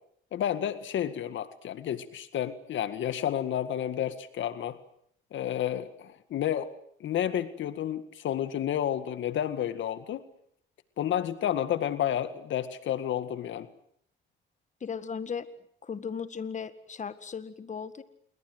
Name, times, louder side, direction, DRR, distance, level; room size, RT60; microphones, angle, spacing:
voice 1, 0.3-4.8 5.3-6.7 7.0-10.3 11.0-13.7, left 10 dB, 70° left, 12 dB, 1.9 m, -31 dB
voice 2, 14.8-15.5 15.8-18.0, left 6 dB, 35° left, 12 dB, 1.9 m, -36 dB
28.0 x 22.5 x 7.9 m, 0.67 s
cardioid pair, 90°, 20 cm